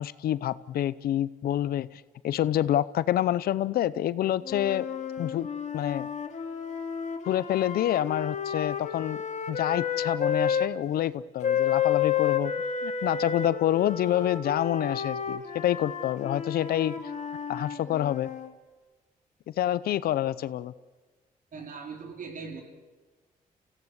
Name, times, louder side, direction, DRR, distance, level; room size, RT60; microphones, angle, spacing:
voice 1, 0.0-4.8 5.2-5.5 5.7-6.1 7.3-9.2 9.5-12.5 12.8-17.0 17.5-18.3 19.5-20.7, left 12 dB, 80° left, 17 dB, 0.7 m, -27 dB
sound 1, 4.4-10.7 11.4-18.5, left 8 dB, 50° left, 2.4 m, -31 dB
voice 2, 21.5-22.6, right 5 dB, 60° right, 3 dB, 4.1 m, -39 dB
28.5 x 16.0 x 8.1 m, 1.3 s
cardioid pair, 80°, 15 cm